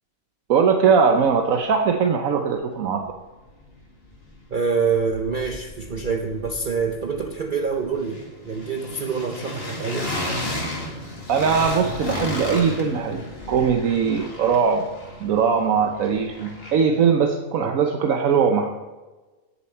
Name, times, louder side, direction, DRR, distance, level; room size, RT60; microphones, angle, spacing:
voice 1, 0.5-3.1 11.3-13.2 13.5-14.9 15.2-18.7, right 6 dB, 80° right, 4 dB, 1.3 m, -20 dB
sound 1, 3.1-3.2 3.4-4.6 4.8-17.0, left 1 dB, 45° left, 2.3 m, -34 dB
voice 2, 4.5-10.1 17.6-17.8, right 5 dB, 45° right, 3 dB, 0.8 m, -26 dB
18.0 x 7.3 x 4.4 m, 1.2 s
omnidirectional pair, 1.4 m